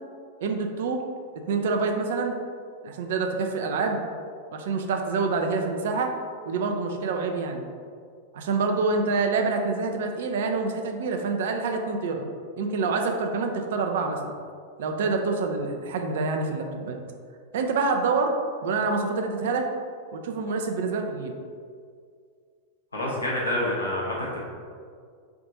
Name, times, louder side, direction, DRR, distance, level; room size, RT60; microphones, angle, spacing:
voice 1, 0.4-1.0 1.5-2.4 2.8-4.1 4.5-6.1 6.4-7.7 8.3-12.3 12.6-14.4 14.8-17.0 17.5-18.3 18.6-19.7 20.1-21.3, right 4 dB, 55° right, 3 dB, 0.4 m, -26 dB
voice 2, 22.9-24.4, left 1 dB, 75° left, -5 dB, 0.8 m, -27 dB
3.4 x 2.5 x 3.9 m, 2.1 s
figure-of-eight pair, 90°, 0 cm